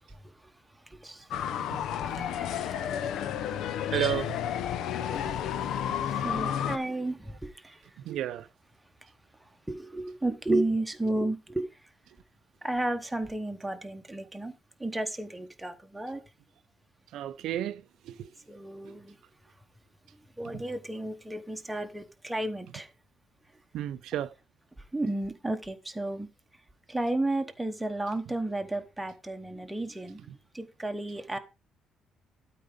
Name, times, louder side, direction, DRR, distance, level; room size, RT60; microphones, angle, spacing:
sound 1, 1.3-6.8, left 9 dB, 70° left, 0.7 m, -31 dB
voice 1, 2.1-2.9 3.9-4.2 5.4-5.6 6.2-7.8 9.7-11.7 12.6-14.5 14.8-16.2 18.5-19.2 20.4-22.9 24.9-26.3 26.9-30.2 30.5-31.4, right 2 dB, 5° right, 1.0 m, -32 dB
voice 2, 3.9-4.3 8.1-8.4 17.1-17.8 23.7-24.3, right 12 dB, 75° right, 0.5 m, -31 dB
12.5 x 4.7 x 5.2 m
cardioid pair, 170°, 0 cm